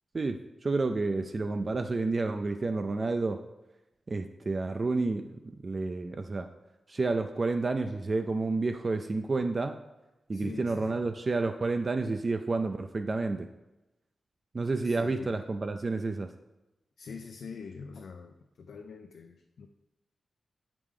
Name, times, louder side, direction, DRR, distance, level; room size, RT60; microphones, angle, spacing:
voice 1, 0.1-3.4 4.1-5.4 5.6-6.5 6.9-9.7 10.3-13.5 14.5-16.3, right 3 dB, 40° right, 6 dB, 0.3 m, -30 dB
voice 2, 10.3-11.1 14.8-15.4 17.0-19.7, left 5 dB, 90° left, 4 dB, 0.4 m, -44 dB
7.8 x 4.9 x 3.7 m, 1.0 s
wide cardioid pair, 110°, 0 cm